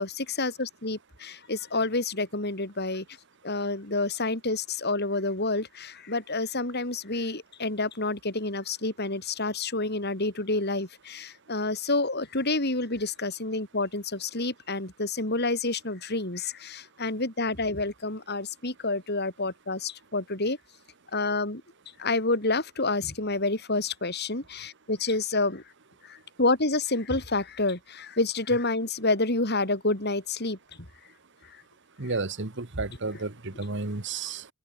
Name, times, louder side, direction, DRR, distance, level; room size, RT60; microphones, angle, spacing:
voice 1, 0.0-3.0 3.4-20.6 21.1-21.6 22.0-25.6 26.0-30.6 31.4-31.6 32.0-32.2, left 2 dB, 50° left, 4.3 m, -28 dB
voice 2, 32.0-34.5, right 3 dB, 55° right, 1.5 m, -32 dB
head